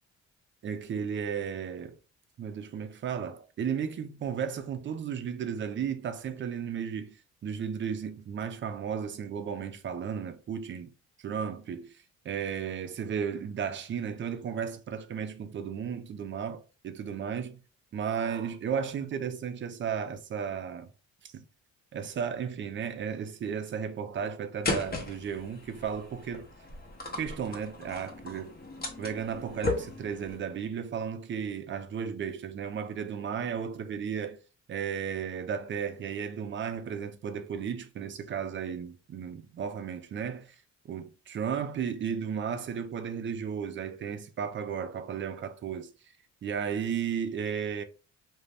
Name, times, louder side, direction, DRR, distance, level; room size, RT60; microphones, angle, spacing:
voice 1, 0.6-2.0 2.4-7.2 7.4-10.9 11.2-17.6 17.9-20.9 21.2-21.4 21.9-26.5 27.2-28.5 29.0-34.4 34.7-40.6 40.8-45.9 46.4-47.8, right 7 dB, 40° right, 0.4 m, -34 dB
sound 1, 24.6-30.4, left 2 dB, 30° left, 0.8 m, -36 dB
2.5 x 2.1 x 3.2 m
cardioid pair, 90°, 30 cm